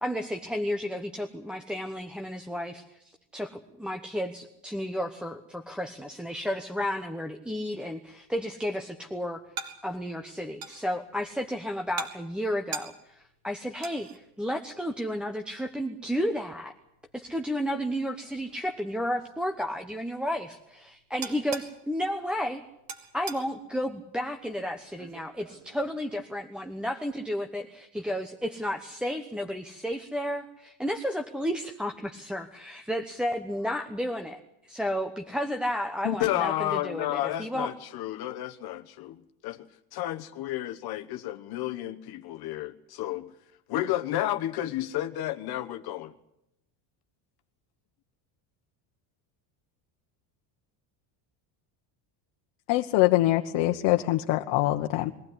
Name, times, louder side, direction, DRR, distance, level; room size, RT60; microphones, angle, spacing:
voice 1, 0.0-3.0 3.3-9.4 9.8-16.7 17.1-22.6 23.1-37.7, equal, ahead, 3 dB, 1.0 m, -32 dB
sound 1, 8.1-26.6, right 5 dB, 45° right, 3.7 m, -46 dB
voice 2, 36.0-39.7 39.9-43.3 43.7-46.1, left 14 dB, 50° left, 8 dB, 1.2 m, -31 dB
voice 3, 52.7-55.1, left 16 dB, 65° left, 4 dB, 1.3 m, -24 dB
23.0 x 15.5 x 9.9 m, 0.83 s
cardioid pair, 150°, 46 cm